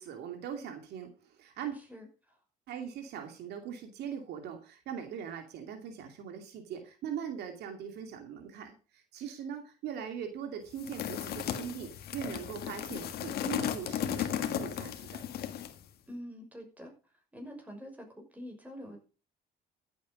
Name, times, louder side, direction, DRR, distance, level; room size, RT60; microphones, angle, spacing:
voice 1, 0.0-1.8 2.7-15.2, right 8 dB, 75° right, 5 dB, 2.6 m, -41 dB
voice 2, 1.7-2.4 16.1-16.9 17.3-19.0, equal, 10° right, 2 dB, 5.8 m, -46 dB
sound 1, 10.8-15.8, left 10 dB, 65° left, 1.7 m, -35 dB
14.5 x 8.5 x 5.2 m, 0.35 s
cardioid pair, 110°, 17 cm